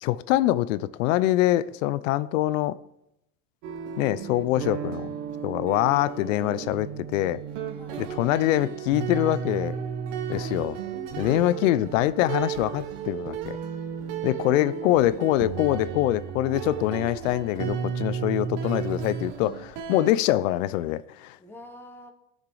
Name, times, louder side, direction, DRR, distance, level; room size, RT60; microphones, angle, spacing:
voice 1, 0.0-2.8 4.0-5.1 5.4-7.4 8.0-9.8 10.3-10.8 11.2-13.6 14.2-21.4, left 14 dB, 90° left, 0.7 m, -24 dB
sound 1, 3.6-20.1, right 7 dB, 60° right, 1.4 m, -33 dB
voice 2, 7.7-8.1 10.9-11.7 21.4-22.1, left 1 dB, 5° left, 1.3 m, -46 dB
18.5 x 6.6 x 4.9 m
cardioid pair, 150°, 37 cm